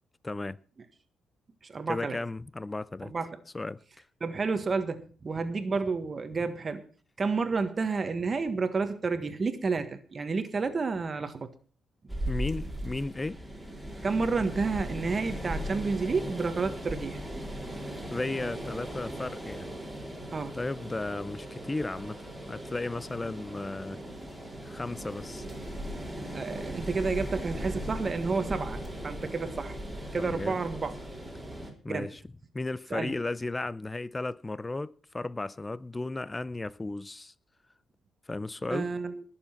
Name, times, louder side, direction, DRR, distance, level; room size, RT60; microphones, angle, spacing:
voice 1, 0.2-0.6 1.9-3.1 3.5-3.8 12.3-13.4 18.1-19.7 20.5-22.2 22.5-24.0 24.6-25.5 30.2-30.6 31.8-32.2 32.5-37.3 38.3-38.9, left 2 dB, 20° left, 0.6 m, -34 dB
voice 2, 1.6-2.2 3.0-3.4 4.2-6.8 7.2-11.5 14.0-17.2 20.3-20.6 26.3-29.8 30.1-30.9 31.9-32.1 32.9-33.1 38.7-39.2, right 4 dB, 35° right, 1.5 m, -30 dB
sound 1, 12.1-31.7, equal, 5° right, 4.3 m, -38 dB
19.0 x 7.2 x 5.8 m
cardioid pair, 90°, 0 cm